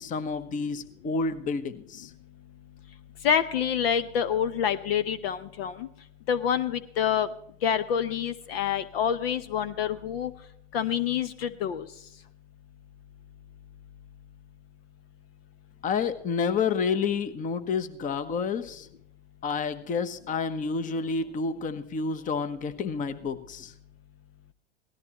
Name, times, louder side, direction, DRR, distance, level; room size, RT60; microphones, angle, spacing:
voice 1, 0.0-2.1 15.8-18.9 19.4-23.7, left 5 dB, 20° left, 11 dB, 1.1 m, -29 dB
voice 2, 3.2-5.9 6.3-7.3 7.6-10.3 10.7-11.9, left 8 dB, 55° left, 14 dB, 0.9 m, -27 dB
18.0 x 13.5 x 3.0 m, 0.70 s
hypercardioid pair, 115°, 35 cm